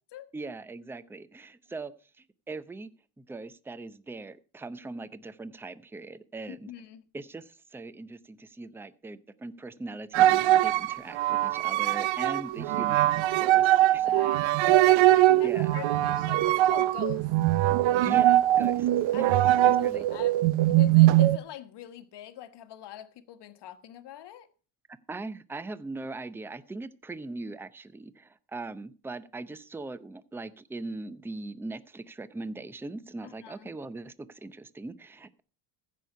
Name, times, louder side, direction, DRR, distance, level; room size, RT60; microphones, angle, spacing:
voice 1, 0.3-1.9 2.5-2.9 3.2-6.7 7.1-13.6 13.9-14.0 14.6-14.7 15.4-15.7 18.0-18.9 19.2-19.3 19.6-20.2 25.1-35.4, right 3 dB, 5° right, 0.6 m, -40 dB
voice 2, 6.5-7.1 13.5-14.5 14.8-17.3 19.1-24.5 33.2-33.7, left 12 dB, 55° left, 1.4 m, -43 dB
sound 1, 10.1-21.4, right 14 dB, 65° right, 0.7 m, -22 dB
15.0 x 6.5 x 5.5 m
cardioid pair, 105°, 50 cm